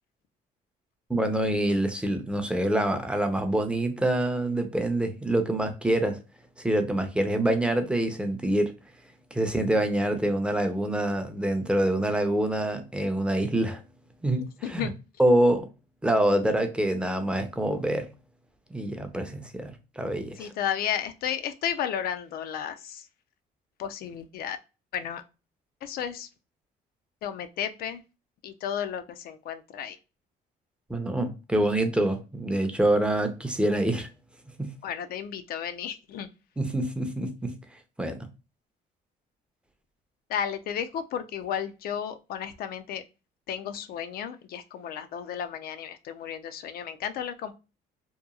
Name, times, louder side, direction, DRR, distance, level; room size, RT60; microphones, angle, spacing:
voice 1, 1.1-6.2 6.6-8.7 9.3-13.8 14.2-14.9 15.2-15.7 16.0-18.1 18.7-20.5 30.9-34.1 34.6-34.7 36.6-37.5 38.0-38.3, right 1 dB, 5° right, 0.5 m, -26 dB
voice 2, 14.4-15.0 20.4-23.1 23.8-24.6 24.9-25.2 25.8-26.3 27.2-28.0 28.4-30.0 34.8-36.3 40.3-43.0 43.5-47.5, left 9 dB, 65° left, 0.4 m, -33 dB
2.9 x 2.2 x 2.3 m
cardioid pair, 110°, 17 cm